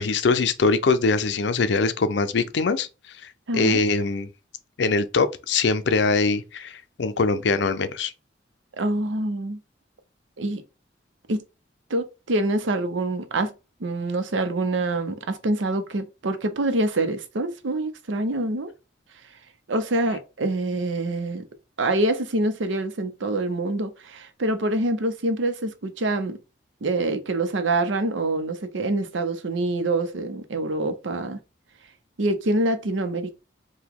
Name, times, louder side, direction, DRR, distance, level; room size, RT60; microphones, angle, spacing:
voice 1, 0.0-2.9 3.2-4.3 4.8-8.1, left 4 dB, 65° left, 0.5 m, -22 dB
voice 2, 3.5-3.8 8.8-9.6 10.4-10.6 11.3-11.4 11.9-13.5 13.8-18.7 19.7-21.4 21.8-26.4 26.8-31.4 32.2-33.3, right 2 dB, 80° right, 0.7 m, -25 dB
4.8 x 2.2 x 3.5 m
head